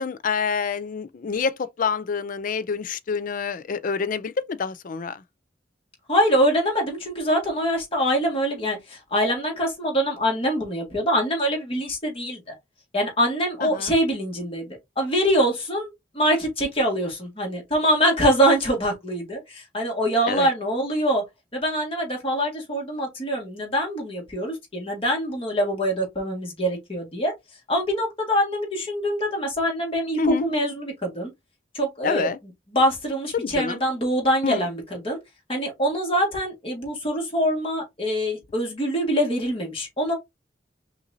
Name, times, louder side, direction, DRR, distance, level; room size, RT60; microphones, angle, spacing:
voice 1, 0.0-5.2 13.6-13.9 20.3-20.5 30.2-30.5 32.0-32.4 33.3-33.8 34.4-34.7, left 5 dB, 50° left, 0.4 m, -27 dB
voice 2, 6.1-12.5 12.9-21.2 21.5-27.3 27.7-31.3 31.7-32.3 32.7-35.2 35.5-40.1, equal, 30° left, 1.9 m, -24 dB
5.7 x 2.7 x 2.7 m
head